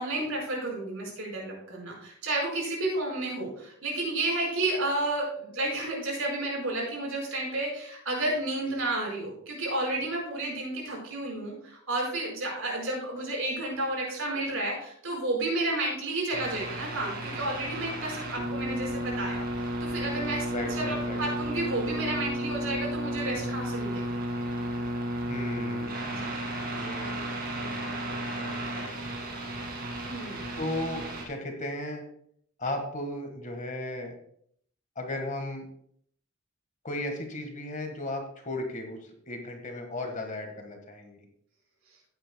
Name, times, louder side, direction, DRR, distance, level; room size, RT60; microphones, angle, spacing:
voice 1, 0.0-24.0 26.1-26.4 30.0-30.4, right 2 dB, 65° right, -1 dB, 4.7 m, -31 dB
sound 1, 16.3-31.3, right 1 dB, 40° right, 2.2 m, -33 dB
voice 2, 20.5-21.2 25.3-26.3 26.7-29.4 30.5-32.0 32.6-34.2 34.9-35.7 36.8-41.2, left 1 dB, 35° left, 4 dB, 1.5 m, -36 dB
16.5 x 8.9 x 2.2 m, 0.66 s
head